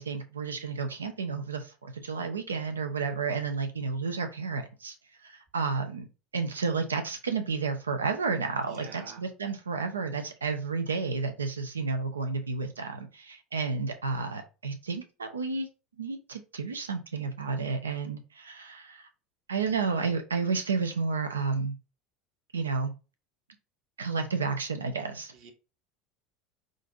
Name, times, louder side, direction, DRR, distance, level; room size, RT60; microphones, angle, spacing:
voice 1, 0.0-4.9 5.2-6.1 6.3-15.7 16.0-19.1 19.5-21.7 22.5-22.9 24.0-25.3, right 4 dB, 80° right, 0.5 m, -31 dB
voice 2, 8.6-9.2 25.3-25.5, right 6 dB, 55° right, 1.0 m, -47 dB
5.0 x 2.6 x 2.5 m
figure-of-eight pair, 75°, 0 cm